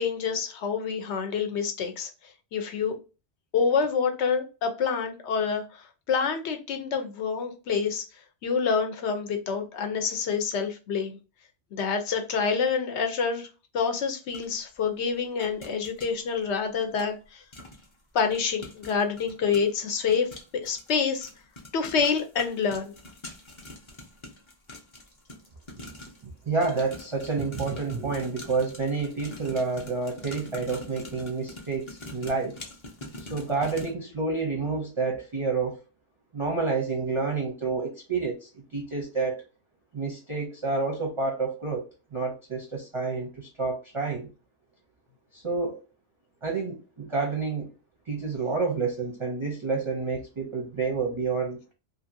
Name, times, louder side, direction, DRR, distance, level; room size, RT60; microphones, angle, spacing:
voice 1, 0.0-2.1 2.5-3.0 3.5-5.6 6.1-8.0 8.4-11.2 11.7-13.5 13.7-17.4 18.1-21.3 21.7-22.9, left 5 dB, 70° left, 0.9 m, -27 dB
sound 1, 14.3-14.5 15.4-16.1 17.0-17.1 17.5-17.9 18.2-26.3 26.6-33.9, left 1 dB, 30° left, 0.6 m, -44 dB
voice 2, 26.2-32.6 33.2-35.8 36.3-39.4 39.9-41.8 42.1-44.3 45.3-45.8 46.4-47.7 48.1-51.6, right 4 dB, 35° right, 0.6 m, -29 dB
2.8 x 2.5 x 2.6 m
omnidirectional pair, 1.3 m